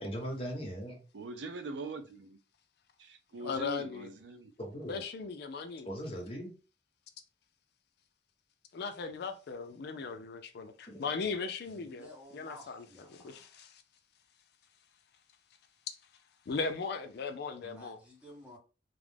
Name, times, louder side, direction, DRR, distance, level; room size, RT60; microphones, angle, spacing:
voice 1, 0.0-1.0 4.6-5.0 5.8-6.5 10.9-11.0, equal, 35° left, 0.8 m, -39 dB
voice 2, 1.1-2.4 3.0-4.5, right 2 dB, 85° right, 0.5 m, -42 dB
voice 3, 3.4-4.1 4.9-5.9 8.7-13.8 16.5-18.0, left 4 dB, 65° left, 0.4 m, -38 dB
voice 4, 11.7-13.5 17.6-18.6, equal, 5° right, 0.8 m, -53 dB
2.3 x 2.0 x 3.3 m
head